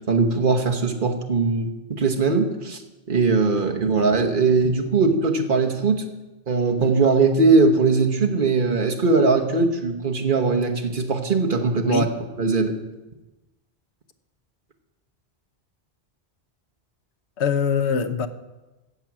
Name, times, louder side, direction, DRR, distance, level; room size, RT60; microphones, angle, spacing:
voice 1, 0.1-2.8 3.1-6.0 6.5-12.0 12.4-12.8, right 4 dB, 50° right, 3 dB, 1.3 m, -20 dB
voice 2, 17.4-18.3, left 6 dB, 85° left, 10 dB, 1.1 m, -23 dB
15.5 x 7.6 x 6.0 m, 1.1 s
omnidirectional pair, 1.1 m